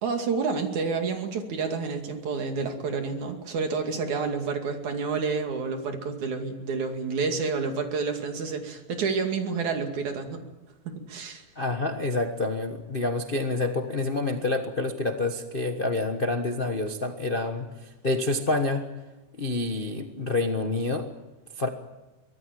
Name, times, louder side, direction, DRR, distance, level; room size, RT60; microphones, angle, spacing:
voice 1, 0.0-10.4 10.9-11.4, right 4 dB, 80° right, 4 dB, 3.8 m, -29 dB
voice 2, 11.6-18.9 19.3-21.1 21.6-21.7, left 2 dB, 60° left, 5 dB, 0.5 m, -28 dB
24.0 x 18.0 x 9.1 m, 1.1 s
omnidirectional pair, 3.3 m